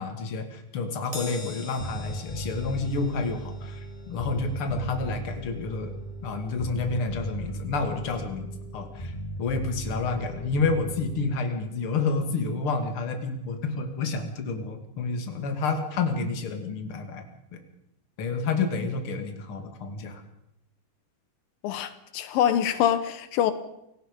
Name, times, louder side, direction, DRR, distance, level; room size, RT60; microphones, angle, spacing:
voice 1, 0.0-5.9 6.2-17.2 17.5-17.6 18.2-20.2, left 4 dB, 40° left, 2.9 m, -29 dB
Crash cymbal, 1.1-7.7 8.1-8.3 9.3-9.4, left 2 dB, 10° right, 4.7 m, -46 dB
Bass guitar, 1.8-11.4, right 1 dB, 15° left, 2.3 m, -37 dB
voice 2, 21.6-23.5, left 10 dB, 85° left, 2.8 m, -25 dB
28.5 x 18.0 x 5.4 m
omnidirectional pair, 4.0 m